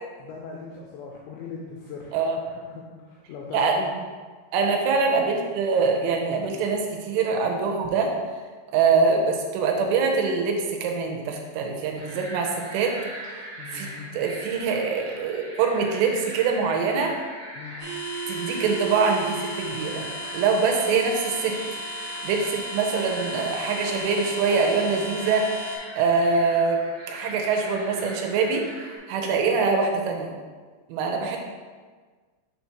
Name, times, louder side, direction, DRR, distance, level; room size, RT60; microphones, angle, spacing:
voice 1, 0.2-3.9 13.6-14.1 17.6-17.8, left 5 dB, 85° left, -2 dB, 2.5 m, -39 dB
voice 2, 4.5-8.1 8.7-13.0 13.7-17.2 18.3-20.1 20.3-21.6 22.2-25.5 26.0-26.8 27.1-30.3 30.9-31.4, right 4 dB, 85° right, 1 dB, 3.2 m, -24 dB
sound 1, 12.0-29.0, right 1 dB, 55° right, 1.5 m, -41 dB
sound 2, 17.8-25.8, equal, 70° right, 1.3 m, -34 dB
7.2 x 2.9 x 5.8 m, 1.5 s
omnidirectional pair, 5.7 m